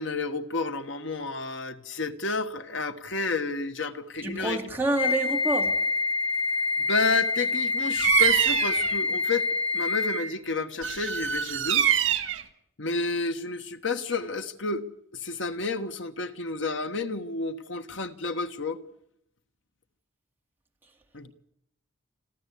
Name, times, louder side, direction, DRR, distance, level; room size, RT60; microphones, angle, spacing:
voice 1, 0.0-4.6 6.8-9.5 9.7-11.9 12.8-18.8 21.1-21.3, left 3 dB, 70° left, 1.4 m, -30 dB
voice 2, 4.2-5.7, right 2 dB, 10° right, 2.5 m, -28 dB
Wind instrument woodwind instrument, 5.0-10.3, left 3 dB, 25° left, 6.1 m, -27 dB
Bird vocalization bird call bird song, 8.0-9.0 10.8-12.4, right 8 dB, 80° right, 1.7 m, -24 dB
30.0 x 13.5 x 8.4 m
head